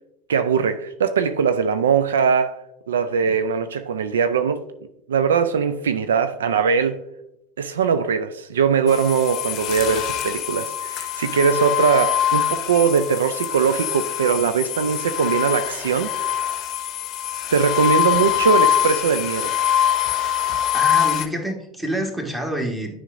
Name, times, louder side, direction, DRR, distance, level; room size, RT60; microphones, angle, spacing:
voice 1, 0.3-2.6 2.9-4.6 5.1-7.0 7.6-16.1 17.5-19.5, right 6 dB, 80° right, 0.3 m, -21 dB
sound 1, 8.9-21.3, left 11 dB, 45° left, 0.7 m, -23 dB
voice 2, 20.7-23.0, equal, 10° right, 1.5 m, -27 dB
9.9 x 5.0 x 2.6 m
hypercardioid pair, 80°, 0 cm